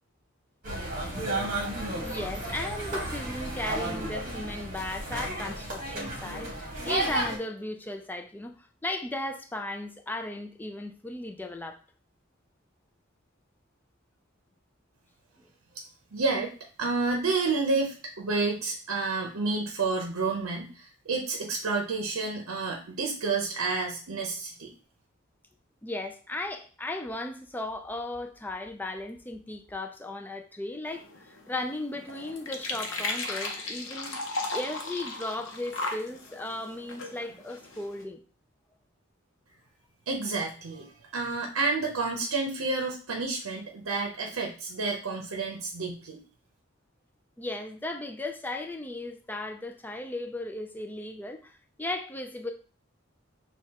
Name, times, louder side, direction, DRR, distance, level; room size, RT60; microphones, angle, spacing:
sound 1, 0.6-7.4, right 1 dB, 40° right, 1.2 m, -33 dB
voice 1, 2.0-11.8 15.4-15.5 25.8-34.2 34.5-38.2 47.4-52.5, left 2 dB, 10° left, 5 dB, 0.3 m, -36 dB
voice 2, 16.1-16.5 16.8-24.7 40.1-46.2, right 3 dB, 85° right, 1 dB, 0.7 m, -30 dB
sound 2, 30.9-38.0, left 2 dB, 65° left, 0.7 m, -36 dB
6.4 x 2.3 x 2.8 m, 0.40 s
head